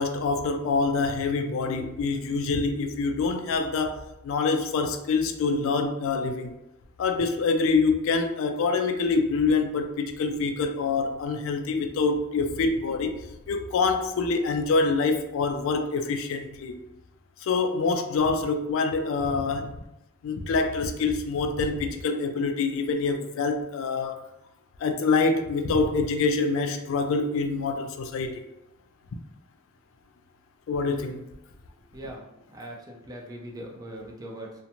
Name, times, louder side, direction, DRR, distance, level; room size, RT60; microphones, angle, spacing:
voice 1, 0.0-6.6 7.0-13.1 13.5-16.8 17.4-19.7 20.2-24.2 24.8-28.4 30.7-31.2, left 4 dB, 70° left, 6 dB, 0.3 m, -26 dB
voice 2, 31.9-34.6, right 1 dB, 20° right, -1 dB, 0.4 m, -41 dB
2.5 x 2.1 x 2.8 m, 0.90 s
head